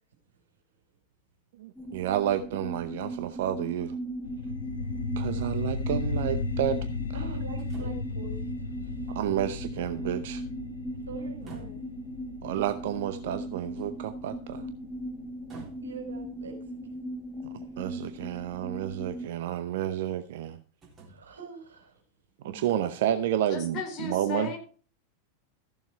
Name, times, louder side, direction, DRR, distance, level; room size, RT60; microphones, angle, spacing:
voice 1, 1.6-4.0 5.2-6.8 9.1-10.4 12.4-14.7 17.8-20.6 22.4-24.5, right 11 dB, 55° right, 0.7 m, -30 dB
sound 1, 1.8-19.3, right 1 dB, ahead, 1.6 m, -38 dB
sound 2, 4.2-15.3, left 4 dB, 75° left, 0.9 m, -36 dB
sound 3, 4.6-4.7 7.6-8.1 8.7-8.8 9.2-10.2 11.2-12.0 13.7-14.1 15.5-16.2 17.7-17.8 18.5-19.2 20.4-20.5 20.8-21.4 22.6-23.0, right 4 dB, 25° right, 3.8 m, -50 dB
voice 2, 7.1-9.1 11.0-11.8 15.8-17.0 21.1-22.0, right 4 dB, 70° right, 4.0 m, -44 dB
voice 3, 23.5-24.6, left 5 dB, 35° left, 4.0 m, -35 dB
14.0 x 7.2 x 4.6 m
figure-of-eight pair, 90°, 0 cm